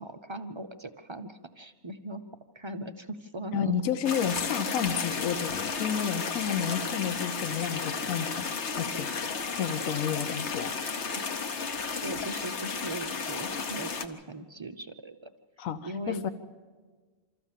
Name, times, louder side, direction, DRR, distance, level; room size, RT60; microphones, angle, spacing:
voice 1, 0.0-2.2 2.5-3.7 11.1-11.3 11.6-11.7 12.0-15.3 15.9-16.3, right 1 dB, 40° right, 8 dB, 0.4 m, -39 dB
voice 2, 3.5-9.1 9.6-10.7 15.6-16.3, left 8 dB, 80° left, 9 dB, 1.2 m, -31 dB
sound 1, 4.1-14.1, left 5 dB, 55° left, 1.3 m, -33 dB
25.5 x 14.0 x 7.4 m, 1.4 s
omnidirectional pair, 1.4 m